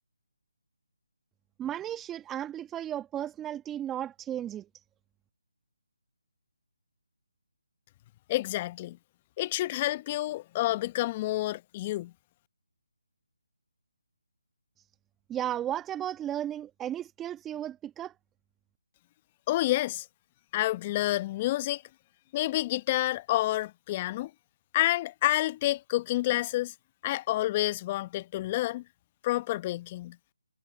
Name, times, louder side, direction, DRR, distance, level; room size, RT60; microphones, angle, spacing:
voice 1, 1.6-4.8 15.3-18.1, right 11 dB, 10° right, 1.4 m, -34 dB
voice 2, 8.3-9.0 9.4-12.1 19.5-20.1 20.5-21.8 22.3-24.3 24.7-26.7 27.0-28.8 29.2-30.2, left 16 dB, 25° left, 1.0 m, -29 dB
figure-of-eight pair, 150°, 0 cm